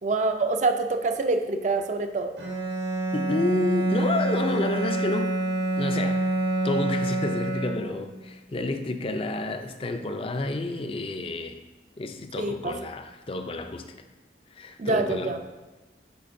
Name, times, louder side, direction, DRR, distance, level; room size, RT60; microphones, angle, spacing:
voice 1, 0.0-2.3 12.4-12.7 14.8-15.4, right 3 dB, 40° right, 6 dB, 0.4 m, -26 dB
Bowed string instrument, 2.4-8.2, right 1 dB, 80° right, 1.4 m, -27 dB
voice 2, 3.1-5.3 5.8-6.2 6.6-11.6 12.0-13.9 14.5-15.3, left 2 dB, 30° left, 7 dB, 0.4 m, -30 dB
9.4 x 4.4 x 2.6 m, 1.2 s
head